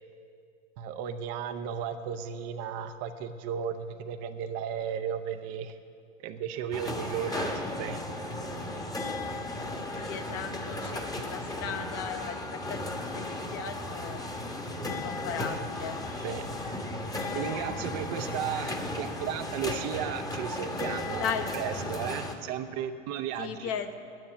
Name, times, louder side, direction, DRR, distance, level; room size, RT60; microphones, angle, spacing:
voice 1, 0.8-5.8 6.2-8.4 10.8-11.0 16.2-16.5 17.3-23.7, right 8 dB, 40° right, 8 dB, 0.7 m, -35 dB
sound 1, 6.7-22.3, left 2 dB, 10° left, 1.1 m, -35 dB
voice 2, 10.0-14.2 14.8-16.0 21.2-21.5 23.4-24.0, left 7 dB, 40° left, 7 dB, 1.0 m, -37 dB
9.2 x 8.8 x 9.8 m, 2.4 s
hypercardioid pair, 95°, 38 cm